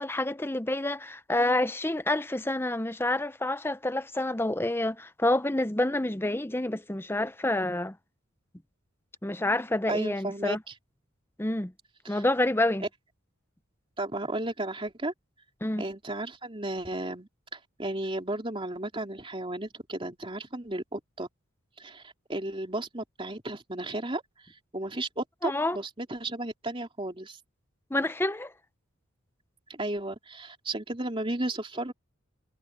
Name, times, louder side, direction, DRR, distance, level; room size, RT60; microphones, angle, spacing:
voice 1, 0.0-8.0 9.2-10.6 11.4-11.7 12.1-12.8 15.6-15.8 25.4-25.8 27.9-28.5, left 1 dB, 10° left, 0.7 m, -28 dB
voice 2, 9.9-10.7 12.0-12.2 14.0-15.1 15.8-21.3 21.8-27.4 29.7-31.9, right 2 dB, 25° right, 3.1 m, -34 dB
head